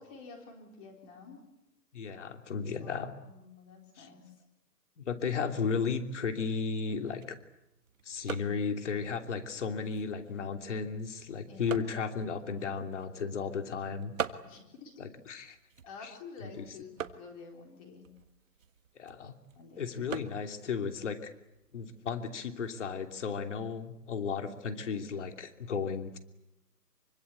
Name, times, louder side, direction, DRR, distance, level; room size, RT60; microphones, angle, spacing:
voice 1, 0.0-1.4 2.8-4.2 5.4-5.6 11.4-11.9 14.4-14.9 15.8-18.1 19.5-19.9, left 4 dB, 20° left, 2 dB, 4.0 m, -50 dB
voice 2, 1.9-3.1 4.0-4.1 5.0-7.4 8.0-14.1 15.0-15.6 16.0-16.1 16.4-16.7 19.0-19.3 19.8-21.3 21.7-26.2, left 5 dB, 45° left, 6 dB, 3.0 m, -34 dB
sound 1, 6.8-22.3, right 7 dB, 50° right, 1.7 m, -46 dB
26.0 x 24.5 x 8.4 m, 0.91 s
hypercardioid pair, 160°, 49 cm